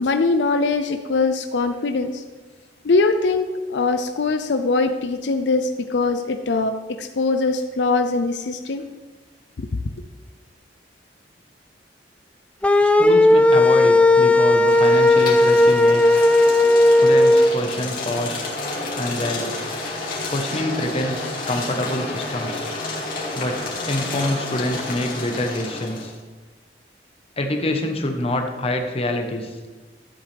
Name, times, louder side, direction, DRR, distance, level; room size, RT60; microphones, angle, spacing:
voice 1, 0.0-2.2 2.8-8.8, left 3 dB, 75° left, 8 dB, 0.5 m, -22 dB
sound 1, 12.6-17.5, left 2 dB, 5° left, 0.3 m, -15 dB
voice 2, 12.8-16.2 17.0-18.5 19.0-19.6 20.3-22.7 23.3-26.1 27.4-29.6, left 1 dB, 35° left, 4 dB, 1.1 m, -26 dB
sound 2, 14.6-26.1, left 2 dB, 50° left, 2.3 m, -30 dB
13.0 x 8.1 x 3.4 m, 1.4 s
head